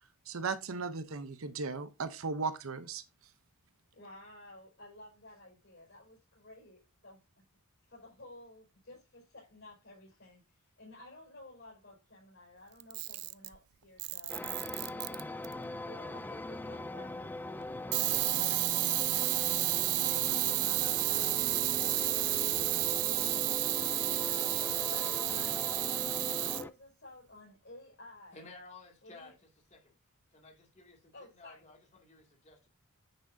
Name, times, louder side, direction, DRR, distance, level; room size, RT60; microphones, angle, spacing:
voice 1, 0.3-3.0, right 4 dB, 65° right, 0.8 m, -36 dB
voice 2, 3.9-7.2 7.8-14.4 14.8-22.7 23.0-24.5 24.9-26.1 26.4-28.5 29.0-29.3 31.1-31.6, left 1 dB, 55° left, 5.0 m, -54 dB
Camera, 12.8-13.6 14.0-15.5 17.9-26.6, right 20 dB, 85° right, 0.4 m, -31 dB
sound 1, 14.3-26.7, left 2 dB, 10° left, 0.3 m, -41 dB
voice 3, 28.3-29.9 30.3-32.7, left 3 dB, 30° left, 2.5 m, -55 dB
9.8 x 6.2 x 2.7 m
head